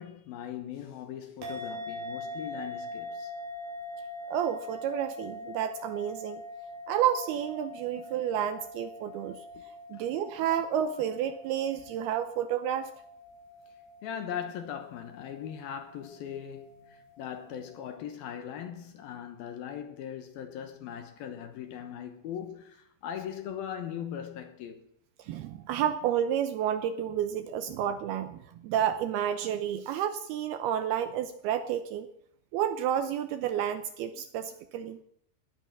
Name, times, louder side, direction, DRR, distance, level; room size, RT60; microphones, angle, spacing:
voice 1, 0.0-3.3 9.9-10.1 14.0-24.9, left 9 dB, 70° left, 2.6 m, -39 dB
sound 1, 1.4-17.9, left 2 dB, 60° right, 6.1 m, -43 dB
voice 2, 4.3-6.4 6.9-9.4 9.9-12.9 25.2-32.1 32.5-35.0, right 10 dB, 80° right, 2.4 m, -30 dB
18.5 x 10.5 x 6.0 m
omnidirectional pair, 5.1 m